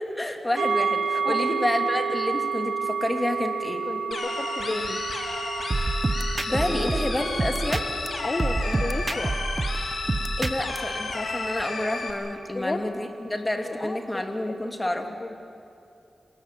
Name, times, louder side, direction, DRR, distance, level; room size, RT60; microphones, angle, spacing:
voice 1, 0.2-3.8 6.5-7.8 10.4-15.0, left 1 dB, 15° left, 4 dB, 2.8 m, -29 dB
sound 1, 0.6-12.2 12.6-12.7, right 5 dB, 75° right, 1.0 m, -31 dB
voice 2, 3.9-5.0 6.5-6.9 8.2-9.3 12.5-12.8 13.6-14.2 15.0-15.4, left 2 dB, 35° left, 5 dB, 1.3 m, -33 dB
sound 2, 4.1-12.1, left 3 dB, 70° left, 3.4 m, -32 dB
sound 3, 5.7-8.1 8.4-10.8, right 2 dB, 35° right, 1.0 m, -27 dB
27.0 x 19.5 x 7.7 m, 2.8 s
cardioid pair, 65°, 0 cm